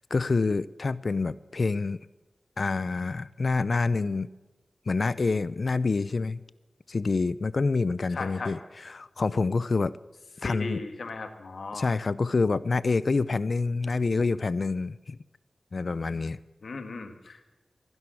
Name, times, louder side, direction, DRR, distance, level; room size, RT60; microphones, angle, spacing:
voice 1, 0.0-2.0 2.6-4.3 4.9-6.4 6.9-9.9 10.4-10.8 11.7-15.2 15.7-16.4, left 3 dB, 60° left, 17 dB, 0.5 m, -27 dB
voice 2, 8.1-8.6 10.4-12.0 16.6-17.4, left 3 dB, 85° left, 7 dB, 1.9 m, -37 dB
15.5 x 11.0 x 7.7 m, 1.1 s
wide cardioid pair, 90°, 0 cm